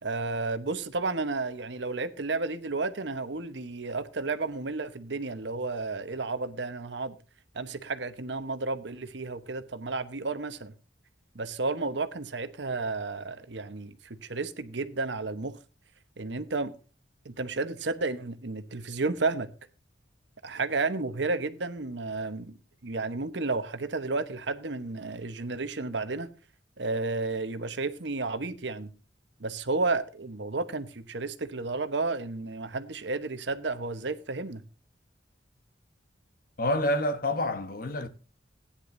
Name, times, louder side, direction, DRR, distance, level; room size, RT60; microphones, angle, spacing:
voice 1, 0.0-7.2 7.5-10.7 11.3-15.6 16.2-16.7 17.2-19.5 20.4-22.6 22.8-26.3 26.8-28.9 29.4-34.6, right 3 dB, 70° right, 1.0 m, -32 dB
voice 2, 36.6-38.1, left 1 dB, 50° left, 1.1 m, -28 dB
16.5 x 10.0 x 2.7 m
head